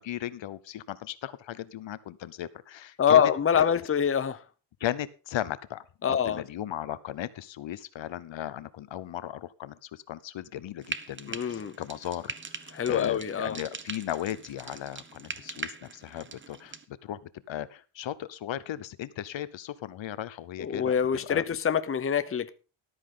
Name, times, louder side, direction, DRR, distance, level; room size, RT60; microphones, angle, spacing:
voice 1, 0.0-3.6 4.8-21.0 21.2-21.4, left 12 dB, 65° left, 0.9 m, -37 dB
voice 2, 3.0-4.4 6.0-6.4 11.3-11.7 12.7-13.6 20.6-22.5, left 8 dB, 25° left, 0.8 m, -25 dB
Frying (food), 10.8-16.8, right 5 dB, 25° right, 0.9 m, -41 dB
13.5 x 12.5 x 3.8 m
cardioid pair, 125°, 48 cm